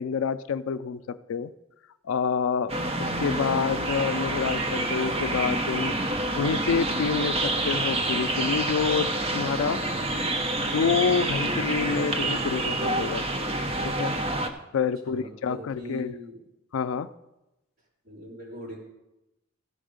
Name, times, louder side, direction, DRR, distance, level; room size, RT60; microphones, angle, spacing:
voice 1, 0.0-1.5 2.1-9.8 10.6-13.3 13.8-14.1 14.7-16.1 16.7-17.1, left 6 dB, 75° left, 14 dB, 0.4 m, -28 dB
sound 1, 2.7-14.5, right 2 dB, 30° right, 0.7 m, -28 dB
voice 2, 15.1-16.4 18.0-18.8, left 1 dB, 45° right, -5 dB, 3.7 m, -41 dB
15.5 x 5.4 x 5.0 m, 0.96 s
head